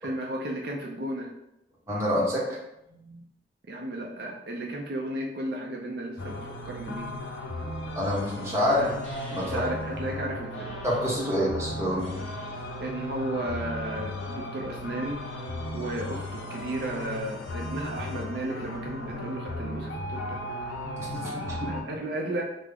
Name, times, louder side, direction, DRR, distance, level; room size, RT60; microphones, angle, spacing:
voice 1, 0.0-1.3 3.7-6.4 6.6-7.1 8.7-8.9 9.4-10.7 12.8-15.2 15.7-20.4 21.7-22.4, right 1 dB, 60° right, 0 dB, 0.4 m, -34 dB
voice 2, 1.9-2.6 2.9-3.2 8.0-8.8 9.3-9.7 10.8-12.2 21.0-21.8, left 1 dB, 15° right, -6 dB, 0.8 m, -28 dB
sound 1, 6.2-21.8, left 1 dB, 85° left, 0.5 m, -36 dB
sound 2, 9.0-9.9 10.5-11.2 12.0-12.8 13.5-14.1 15.0-15.7, right 1 dB, 35° left, 0.9 m, -44 dB
3.4 x 2.0 x 3.4 m, 0.85 s
head